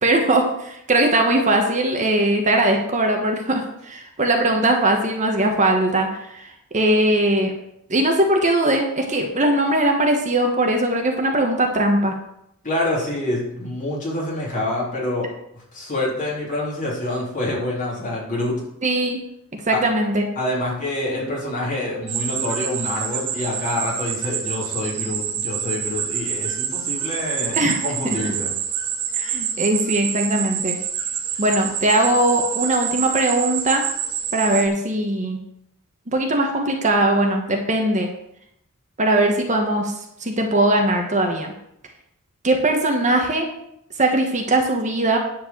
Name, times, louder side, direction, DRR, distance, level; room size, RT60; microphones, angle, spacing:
voice 1, 0.0-7.5 7.9-12.2 18.8-19.2 19.5-20.3 27.5-27.8 28.2-28.3 29.1-30.8 31.4-33.9 34.3-35.4 36.1-38.1 39.0-39.9 40.2-41.5 42.4-43.5 44.0-45.2, right 1 dB, 35° right, 2 dB, 1.3 m, -20 dB
voice 2, 12.6-15.3 15.5-18.6 19.7-19.8 20.4-28.5, left 1 dB, 35° left, -4 dB, 3.5 m, -26 dB
sound 1, 22.1-34.7, right 8 dB, 80° right, 1.3 m, -27 dB
10.0 x 4.6 x 7.4 m, 0.77 s
head